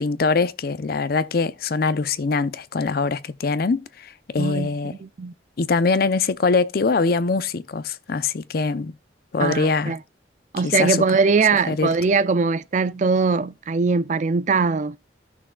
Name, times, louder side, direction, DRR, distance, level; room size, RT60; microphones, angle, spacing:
voice 1, 0.0-4.9 5.6-8.9 9.3-10.0 10.6-11.0 11.7-11.9, left 4 dB, 55° left, 0.5 m, -23 dB
voice 2, 4.4-5.3 9.4-10.0 10.5-15.0, right 4 dB, 40° right, 0.4 m, -21 dB
15.0 x 6.1 x 2.2 m
head